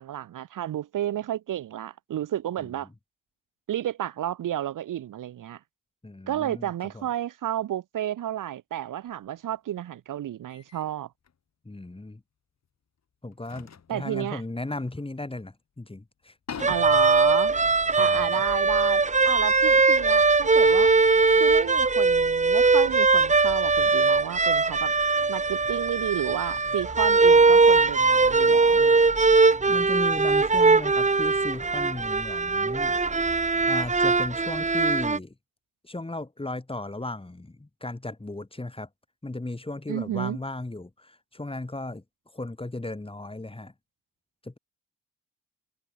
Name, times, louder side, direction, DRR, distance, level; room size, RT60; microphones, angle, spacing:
voice 1, 0.0-2.9 3.7-5.6 6.3-11.1 13.9-14.4 16.7-17.5 17.9-20.9 21.4-24.9 25.3-29.0 39.9-40.4, right 11 dB, 75° right, 2.9 m, -31 dB
voice 2, 6.0-7.1 11.7-12.2 13.2-16.8 18.0-18.4 29.7-32.9 33.7-35.3 35.8-38.9 39.2-42.0 42.3-43.7 44.4-44.6, left 2 dB, 15° left, 7.3 m, -36 dB
sound 1, 9.1-9.3 10.5-10.9 11.2-11.4 12.6-12.7 13.3-15.5 15.9-16.0 16.2-18.7, left 7 dB, 55° left, 6.9 m, -46 dB
sound 2, 16.6-35.2, right 4 dB, 20° right, 1.4 m, -21 dB
cardioid pair, 70°, 32 cm